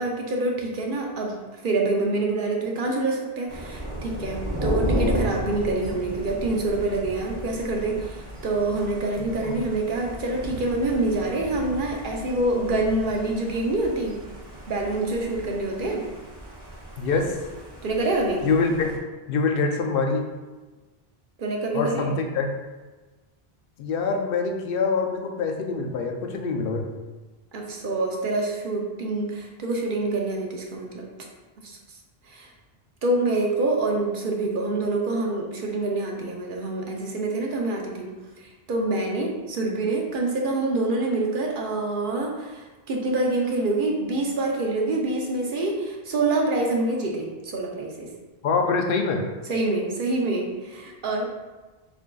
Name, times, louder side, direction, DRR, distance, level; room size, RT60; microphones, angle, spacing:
voice 1, 0.0-1.4 1.6-14.2 14.7-16.0 17.8-18.5 21.4-22.1 27.5-31.1 31.6-31.8 32.3-32.5 33.0-48.1 49.5-51.3, right 2 dB, 60° right, 0 dB, 0.8 m, -26 dB
Thunder, 3.5-19.0, equal, 30° right, 0.5 m, -34 dB
voice 2, 9.2-9.5 17.0-17.4 18.4-19.0 19.3-20.3 21.7-22.5 23.8-26.9 48.4-49.2, left 4 dB, 70° left, 3 dB, 0.7 m, -25 dB
7.0 x 2.5 x 2.3 m, 1.2 s
omnidirectional pair, 1.0 m